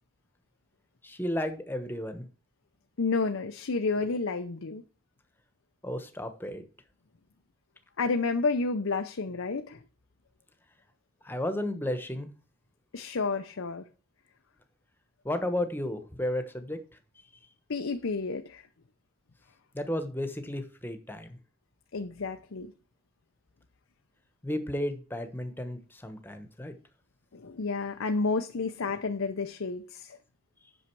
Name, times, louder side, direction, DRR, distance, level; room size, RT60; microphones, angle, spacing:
voice 1, 1.0-2.3 5.8-6.6 11.2-12.3 15.2-16.8 19.7-21.4 24.4-26.7, left 1 dB, 10° left, 1.1 m, -33 dB
voice 2, 3.0-4.8 8.0-9.8 12.9-13.8 17.7-18.6 21.9-22.7 27.3-30.2, left 4 dB, 90° left, 0.7 m, -30 dB
8.6 x 6.5 x 4.7 m
head